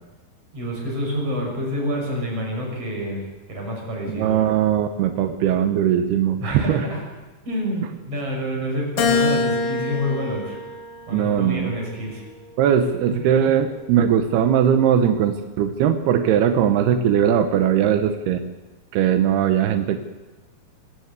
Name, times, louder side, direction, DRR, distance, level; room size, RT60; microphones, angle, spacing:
voice 1, 0.5-3.2 3.5-4.4 6.4-7.0 7.5-10.6 11.1-12.2, equal, 40° right, 0 dB, 7.5 m, -28 dB
voice 2, 4.1-6.9 11.1-11.7 12.6-18.4 18.9-20.0, right 9 dB, 90° right, 7 dB, 3.0 m, -20 dB
Keyboard (musical), 9.0-11.5 12.1-13.3, left 4 dB, 65° left, 3.6 m, -26 dB
26.5 x 14.0 x 8.2 m, 1.2 s
omnidirectional pair, 4.4 m